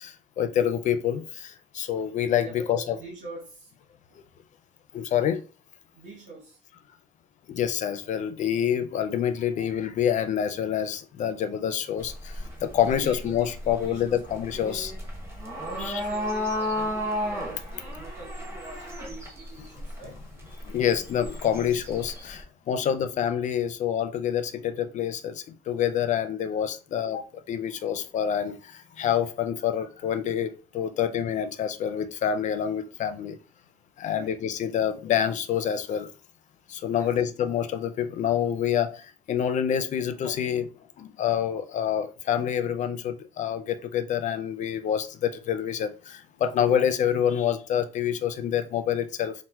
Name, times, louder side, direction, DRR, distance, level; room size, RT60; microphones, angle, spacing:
voice 1, 0.0-3.0 4.9-5.4 7.5-14.9 15.8-16.0 20.6-27.2 27.5-33.4 34.0-36.1 36.7-40.7 41.0-49.3, left 9 dB, 45° left, 0.4 m, -27 dB
voice 2, 2.4-3.7 5.9-6.6 12.7-14.2 14.5-15.0 15.6-20.1 22.8-22.9 34.0-34.5 37.0-37.2, right 2 dB, 55° right, 1.0 m, -44 dB
sound 1, 12.0-22.4, left 1 dB, 15° right, 0.9 m, -34 dB
4.2 x 2.1 x 2.3 m
cardioid pair, 110°, 17 cm